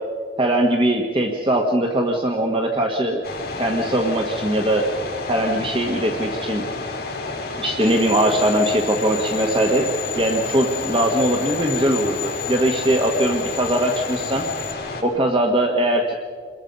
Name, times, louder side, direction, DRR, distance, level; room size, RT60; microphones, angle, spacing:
voice 1, 0.4-3.2 3.6-4.9 5.3-6.6 7.6-9.9 10.1-14.4 15.0-16.1, right 1 dB, 30° right, 2 dB, 1.4 m, -20 dB
sound 1, 3.2-15.0, left 3 dB, 60° left, 5.3 m, -30 dB
sound 2, 7.8-14.7, left 11 dB, 35° left, 1.9 m, -33 dB
28.0 x 21.5 x 5.4 m, 2.1 s
head